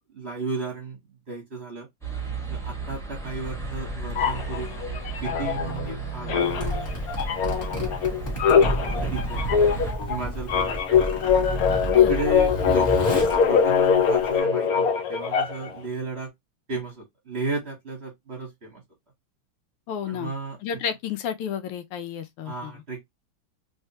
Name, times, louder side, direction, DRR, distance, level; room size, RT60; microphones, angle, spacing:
voice 1, 0.1-1.0 1.3-1.9 2.5-4.9 5.2-6.8 8.8-11.1 12.1-16.3 16.7-18.8 20.1-20.6 22.4-23.0, right 4 dB, 40° right, 1.0 m, -34 dB
sound 1, 2.0-9.9, right 3 dB, ahead, 0.7 m, -34 dB
sound 2, 4.2-6.0 6.3-15.8, left 7 dB, 70° left, 0.9 m, -22 dB
Zipper (clothing), 6.4-14.4, right 1 dB, 30° left, 1.5 m, -31 dB
voice 2, 11.8-12.1 19.9-20.3 20.6-22.8, left 8 dB, 90° left, 1.6 m, -32 dB
3.4 x 3.2 x 2.7 m
omnidirectional pair, 2.4 m